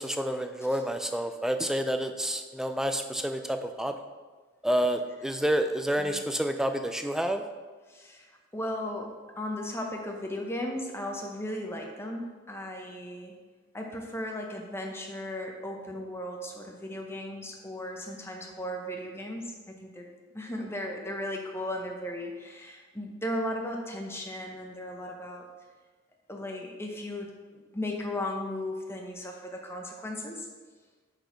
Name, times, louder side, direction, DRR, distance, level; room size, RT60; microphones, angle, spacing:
voice 1, 0.0-3.9 4.6-7.4, right 1 dB, 5° right, 7 dB, 0.3 m, -29 dB
voice 2, 7.9-13.3 13.7-25.5 26.3-30.5, left 1 dB, 15° left, 2 dB, 0.7 m, -36 dB
6.6 x 4.2 x 4.6 m, 1.4 s
head